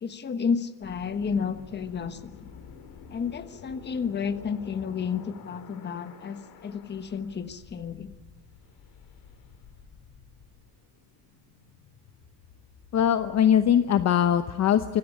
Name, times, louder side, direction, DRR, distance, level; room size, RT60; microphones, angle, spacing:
voice 1, 0.0-2.5 3.1-8.1, left 6 dB, 25° left, 10 dB, 1.3 m, -31 dB
sound 1, 0.8-13.7, left 6 dB, 60° left, 3.4 m, -50 dB
voice 2, 12.9-15.0, left 9 dB, 45° left, 10 dB, 0.9 m, -21 dB
25.0 x 16.5 x 9.9 m, 1.3 s
cardioid pair, 170°, 38 cm